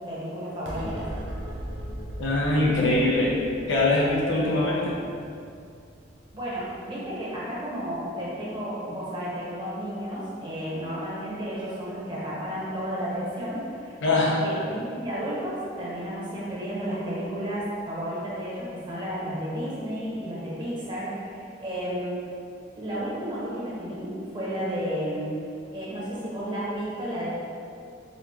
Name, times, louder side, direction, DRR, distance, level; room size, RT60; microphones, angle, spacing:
voice 1, 0.1-1.1 6.3-14.2 14.4-22.3 22.8-25.3 25.7-27.4, equal, 25° right, -8 dB, 1.0 m, -32 dB
sound 1, 0.6-7.3, equal, 75° right, 0.6 m, -39 dB
voice 2, 2.2-3.4 3.7-5.0 14.0-14.4, left 2 dB, 85° left, -5 dB, 0.6 m, -22 dB
4.1 x 2.7 x 2.9 m, 2.4 s
head